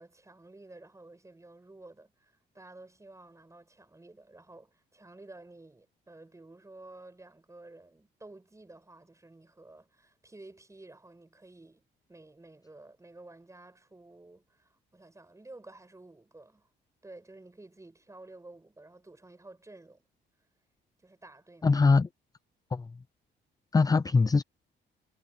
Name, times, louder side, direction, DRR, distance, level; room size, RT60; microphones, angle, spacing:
voice 1, 0.0-16.7 17.0-20.1 21.0-21.8, right 2 dB, 15° right, 6.2 m, -52 dB
voice 2, 21.6-22.1 22.7-22.9 23.7-24.4, left 4 dB, 20° left, 0.5 m, -22 dB
cardioid pair, 90°, 20 cm